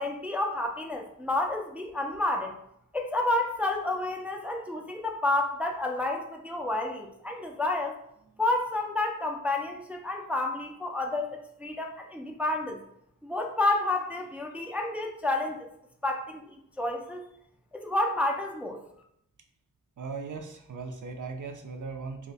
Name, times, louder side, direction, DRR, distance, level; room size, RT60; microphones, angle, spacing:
voice 1, 0.0-2.5 2.9-8.0 8.4-12.8 13.2-15.7 16.0-16.4 16.8-17.2 17.7-18.8, left 2 dB, 5° right, 2 dB, 0.3 m, -30 dB
voice 2, 20.0-22.3, right 4 dB, 65° right, 4 dB, 0.5 m, -38 dB
2.7 x 2.1 x 4.0 m, 0.75 s
wide cardioid pair, 70°, 33 cm